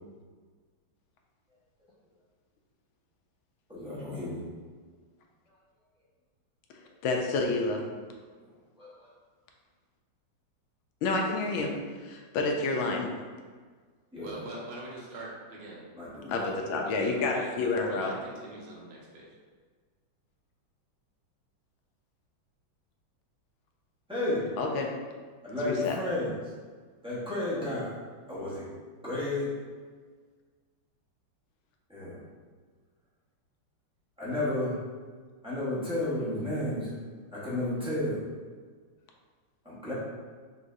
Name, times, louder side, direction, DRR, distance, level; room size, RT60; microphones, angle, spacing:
voice 1, 3.7-4.5 8.4-8.5 8.8-9.1 14.1-14.4 15.9-16.6 24.1-24.4 25.4-26.3 27.0-28.0 28.3-28.7 29.0-29.5 31.9-32.2 34.2-34.8 35.4-37.0 37.3-38.2 39.6-39.9, left 1 dB, 5° right, -10 dB, 0.7 m, -32 dB
voice 2, 7.0-7.8 11.0-11.7 12.0-13.1 16.3-18.1 24.6-24.9 25.6-26.0, left 3 dB, 85° left, 1 dB, 1.4 m, -29 dB
voice 3, 14.2-15.9 16.3-19.3, right 2 dB, 70° right, -3 dB, 1.5 m, -43 dB
5.3 x 3.1 x 2.6 m, 1.5 s
omnidirectional pair, 2.2 m